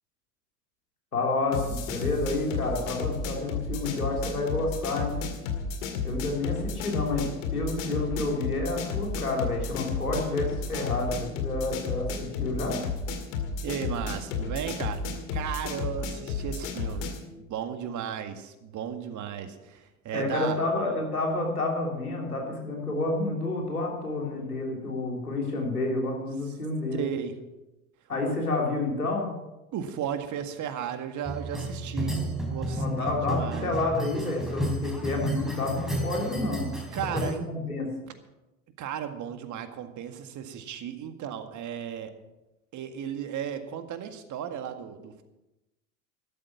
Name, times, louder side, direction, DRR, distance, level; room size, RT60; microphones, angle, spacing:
voice 1, 1.1-5.2 6.0-12.8 20.1-27.0 28.1-29.3 32.6-36.7 37.1-37.9, left 2 dB, 90° left, 0 dB, 3.3 m, -29 dB
sound 1, 1.5-17.3, left 4 dB, 65° left, 2.3 m, -33 dB
voice 2, 13.6-15.0 15.3-17.1 17.3-20.6 26.9-27.4 28.2-28.4 29.7-33.7 36.9-37.5 38.8-42.1 42.7-45.2, right 9 dB, 40° right, 8 dB, 1.9 m, -35 dB
sound 2, 31.2-37.3, right 1 dB, ahead, 4.1 m, -32 dB
13.5 x 12.5 x 6.0 m, 0.99 s
figure-of-eight pair, 70°, 43 cm